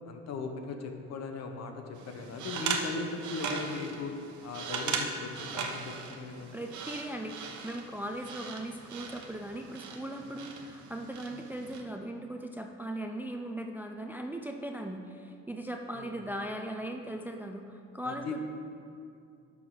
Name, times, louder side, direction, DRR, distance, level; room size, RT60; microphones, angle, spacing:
voice 1, 0.1-4.1 4.4-6.7 16.0-16.1 18.0-18.4, left 3 dB, 65° left, 5 dB, 0.9 m, -38 dB
sound 1, 1.9-11.8, right 5 dB, 80° right, 0.9 m, -39 dB
voice 2, 6.5-18.4, right 1 dB, 5° right, 4 dB, 0.3 m, -39 dB
11.5 x 6.2 x 3.8 m, 2.4 s
cardioid pair, 150°, 29 cm